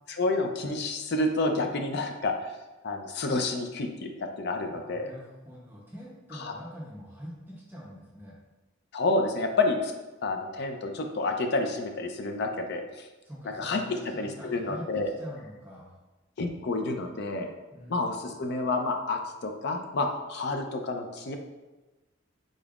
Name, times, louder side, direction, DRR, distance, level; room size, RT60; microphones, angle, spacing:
voice 1, 0.2-2.5 2.8-5.1 6.4-6.5 8.9-9.9 10.2-12.8 13.6-15.1 16.4-17.5 17.9-21.4, left 2 dB, 55° left, 5 dB, 0.5 m, -29 dB
voice 2, 4.7-8.4 13.2-15.9 17.7-18.3, equal, 10° right, -5 dB, 0.7 m, -44 dB
5.2 x 3.8 x 2.4 m, 1.1 s
head